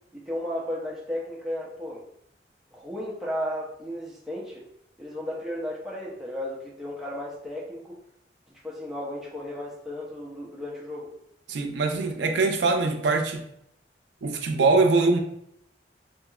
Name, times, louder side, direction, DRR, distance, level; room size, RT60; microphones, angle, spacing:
voice 1, 0.1-2.0 2.7-4.7 5.0-8.0 8.6-11.1, left 1 dB, ahead, -5 dB, 0.6 m, -34 dB
voice 2, 11.5-13.4 14.2-15.2, right 3 dB, 85° right, 4 dB, 0.4 m, -22 dB
2.9 x 2.8 x 2.3 m, 0.74 s
head